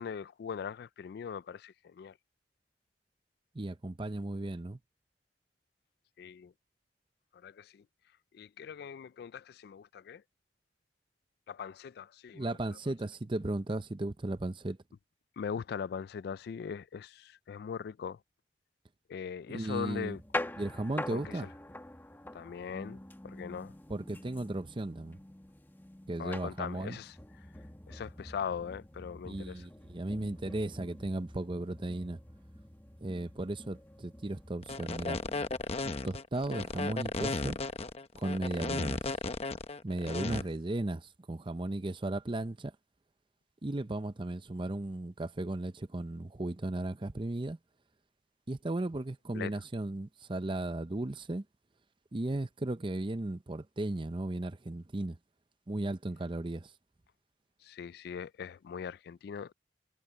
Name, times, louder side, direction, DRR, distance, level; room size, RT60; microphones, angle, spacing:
voice 1, 0.0-2.1 6.2-6.5 7.4-7.8 8.3-10.2 11.5-12.5 15.4-18.2 19.1-20.2 21.1-21.5 22.3-23.0 23.2-23.7 26.2-27.1 27.9-29.6 49.3-49.5 57.6-59.5, left 7 dB, 60° left, 0.3 m, -40 dB
voice 2, 3.5-4.8 12.3-14.8 19.5-20.2 20.6-21.5 23.9-25.2 26.1-27.0 29.3-32.2 33.0-35.2 36.0-37.6 38.1-39.0 39.8-42.7 43.6-47.6 48.5-51.4 52.1-55.2 55.7-56.7, right 2 dB, 30° right, 0.7 m, -35 dB
sound 1, 19.9-36.1, left 1 dB, 10° left, 1.4 m, -45 dB
sound 2, 34.6-40.4, left 3 dB, 35° left, 0.9 m, -35 dB
head